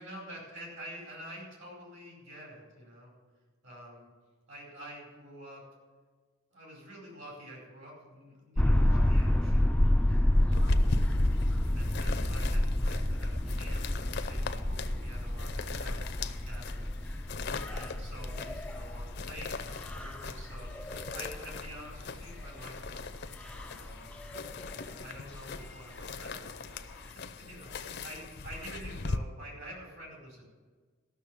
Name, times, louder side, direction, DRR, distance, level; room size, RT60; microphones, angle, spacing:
voice 1, 0.0-3.1 3.6-4.1 4.5-5.7 6.5-11.1 11.7-16.9 17.3-23.1 23.4-24.1 24.7-30.4, equal, 65° right, -1 dB, 4.8 m, -48 dB
sound 1, 8.6-24.9 25.4-25.5 25.6-25.7 27.0-27.1, left 1 dB, 5° left, 0.3 m, -29 dB
sound 2, 10.5-29.2, left 3 dB, 55° left, 0.6 m, -40 dB
13.5 x 6.5 x 8.7 m, 1.5 s
head